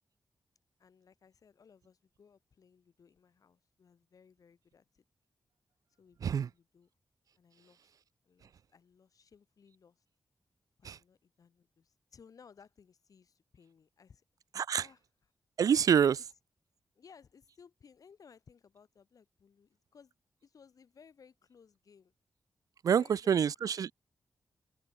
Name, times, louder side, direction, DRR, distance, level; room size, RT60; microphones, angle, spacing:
voice 1, 0.8-5.0 6.0-6.9 7.4-7.9 8.2-10.0 10.8-14.2 14.7-15.0 16.9-20.1 20.4-22.1 22.9-23.7, left 6 dB, 65° left, 4.6 m, -61 dB
voice 2, 14.6-14.9 15.6-16.2 22.8-23.9, right 8 dB, 65° right, 0.3 m, -27 dB
open air
wide cardioid pair, 105°, 7 cm